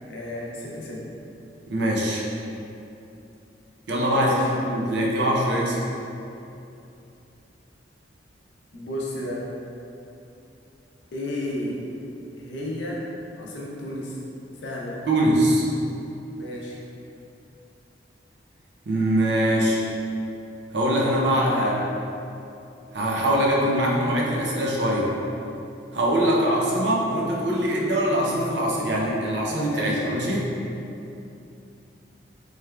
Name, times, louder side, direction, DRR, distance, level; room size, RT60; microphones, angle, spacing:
voice 1, 0.1-1.0 4.0-4.5 8.7-9.5 11.1-11.9 12.3-13.1 13.3-14.2 14.6-15.1 16.3-16.8 26.2-26.4 29.7-30.0, left 1 dB, 75° left, -4 dB, 0.6 m, -33 dB
voice 2, 1.7-2.3 3.9-5.8 15.1-15.7 18.9-19.8 20.7-21.8 22.9-25.1 25.9-30.5, right 1 dB, 65° right, -3 dB, 0.5 m, -22 dB
3.3 x 3.1 x 2.3 m, 2.8 s
head